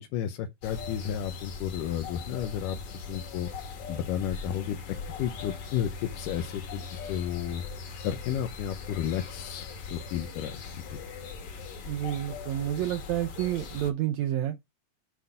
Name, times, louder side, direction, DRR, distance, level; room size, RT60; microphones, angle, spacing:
voice 1, 0.0-2.8 3.1-3.5 3.9-7.6 8.0-11.0, left 10 dB, 85° left, 2.3 m, -33 dB
sound 1, 0.6-13.9, left 5 dB, 65° left, 2.8 m, -40 dB
voice 2, 11.8-14.6, right 12 dB, 80° right, 1.6 m, -29 dB
8.2 x 3.8 x 5.5 m
omnidirectional pair, 3.8 m